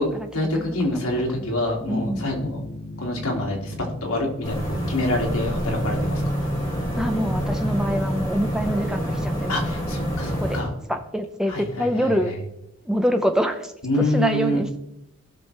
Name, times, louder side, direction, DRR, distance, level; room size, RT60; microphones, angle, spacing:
voice 1, 0.3-6.2 9.5-10.7 11.5-12.3 13.8-14.6, left 1 dB, 80° left, -1 dB, 2.6 m, -26 dB
sound 1, 1.2-11.1, left 2 dB, 45° left, 1.6 m, -40 dB
voice 2, 1.9-2.3 7.0-9.7 10.4-10.6 10.9-12.3 12.8-13.7 14.1-14.8, equal, 5° right, 6 dB, 0.7 m, -25 dB
sound 2, 4.4-10.6, equal, 20° left, 2.5 m, -27 dB
17.5 x 6.1 x 3.4 m, 0.84 s
head